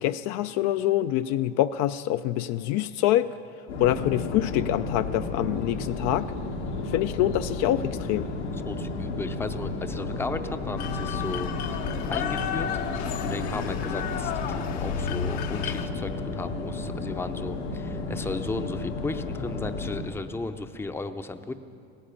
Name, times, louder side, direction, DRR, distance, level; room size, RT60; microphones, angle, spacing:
voice 1, 0.0-3.3 3.8-6.3 6.9-8.3, left 13 dB, 55° left, 11 dB, 0.4 m, -25 dB
sound 1, 3.7-20.0, left 3 dB, 90° left, 1.9 m, -33 dB
voice 2, 8.5-11.5 12.1-21.5, left 3 dB, 5° left, 9 dB, 0.6 m, -35 dB
sound 2, 10.8-15.9, left 8 dB, 70° left, 1.0 m, -32 dB
17.0 x 10.0 x 7.0 m, 2.4 s
supercardioid pair, 105°, 33 cm